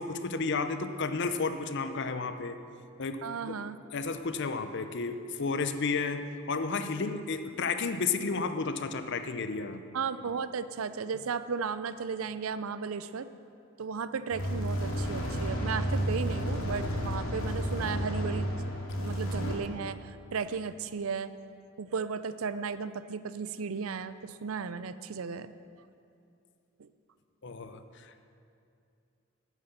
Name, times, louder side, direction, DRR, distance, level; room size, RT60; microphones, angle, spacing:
voice 1, 0.0-2.5 3.0-3.5 3.9-9.8 27.4-28.2, left 4 dB, 60° left, 9 dB, 0.7 m, -32 dB
voice 2, 3.2-3.8 9.9-13.3 13.8-18.6 19.0-20.0 20.3-21.4 21.8-25.5 26.8-26.9, right 5 dB, 85° right, 14 dB, 0.5 m, -35 dB
sound 1, 14.3-19.5, equal, 85° left, 2.3 m, -31 dB
11.5 x 9.4 x 6.7 m, 2.5 s
head